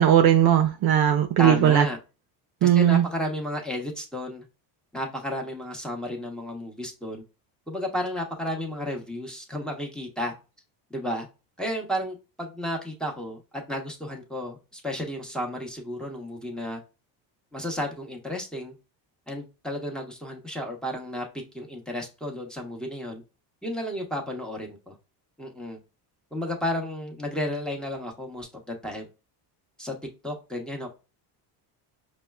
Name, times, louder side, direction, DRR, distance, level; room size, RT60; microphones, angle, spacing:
voice 1, 0.0-1.9 2.6-3.0, right 10 dB, 50° right, 0.6 m, -18 dB
voice 2, 1.4-2.0 2.6-4.4 4.9-7.2 7.7-10.3 10.9-11.3 11.6-13.4 13.7-16.8 17.5-18.7 19.3-21.2 21.5-23.2 23.6-24.9 25.4-25.8 26.3-29.1 29.8-29.9 30.2-30.9, equal, ahead, 0.9 m, -32 dB
5.2 x 2.1 x 2.3 m
supercardioid pair, 90°, 49 cm